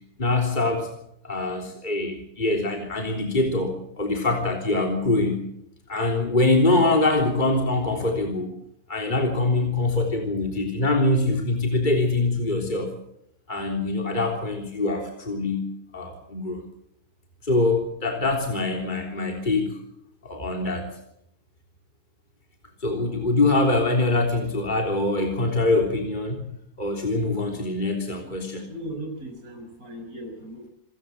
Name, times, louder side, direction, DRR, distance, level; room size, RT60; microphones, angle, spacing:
voice 1, 0.2-0.9 1.2-5.5 5.9-8.5 8.9-12.9 13.5-16.6 17.4-19.8 20.2-20.9 22.8-26.5 26.8-28.7, left 2 dB, 30° left, 2 dB, 3.7 m, -24 dB
voice 2, 28.7-30.7, right 1 dB, 65° right, 3 dB, 6.1 m, -37 dB
27.5 x 16.0 x 7.7 m, 0.77 s
omnidirectional pair, 1.6 m